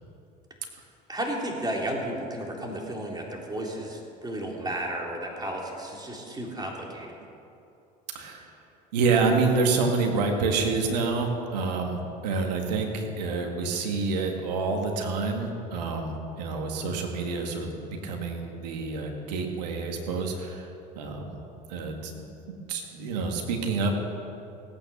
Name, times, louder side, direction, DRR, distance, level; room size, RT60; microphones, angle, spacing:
voice 1, 1.1-7.1, right 1 dB, 20° right, -1 dB, 3.6 m, -33 dB
voice 2, 8.1-8.5 8.9-12.0 12.2-20.7 21.0-21.4 21.7-24.0, right 4 dB, 85° right, 3 dB, 2.0 m, -28 dB
17.0 x 9.0 x 7.0 m, 2.7 s
hypercardioid pair, 75°, 21 cm